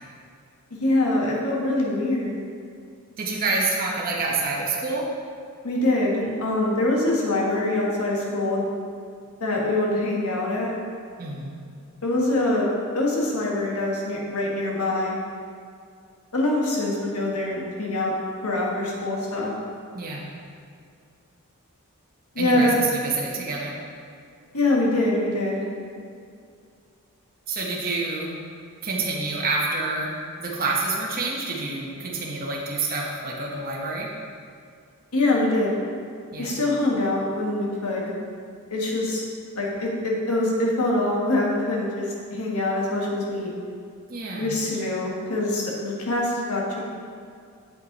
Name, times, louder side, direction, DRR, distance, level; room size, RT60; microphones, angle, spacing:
voice 1, 0.8-2.4 5.6-8.6 9.4-10.8 12.0-12.7 12.9-15.2 16.3-18.1 18.4-19.5 22.3-22.7 24.5-25.7 35.1-35.7 36.4-38.1 38.7-39.2 39.5-43.5 44.4-46.8, left 2 dB, 85° left, -3 dB, 1.5 m, -24 dB
voice 2, 3.2-5.1 11.2-11.5 19.9-20.3 22.4-23.8 27.5-28.3 28.8-30.1 30.4-34.1 36.3-36.6 44.1-44.5, right 3 dB, 40° right, -3 dB, 0.9 m, -27 dB
7.9 x 5.6 x 4.0 m, 2.3 s
head